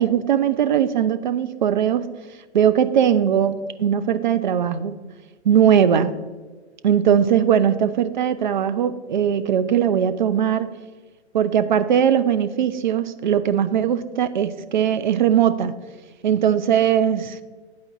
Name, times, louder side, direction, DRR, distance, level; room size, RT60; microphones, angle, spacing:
voice 1, 0.0-2.1 2.5-5.0 5.4-6.1 6.8-10.8 11.3-15.8 16.2-17.4, right 9 dB, 45° right, 0.4 m, -20 dB
10.0 x 4.2 x 3.8 m
figure-of-eight pair, 115°, 34 cm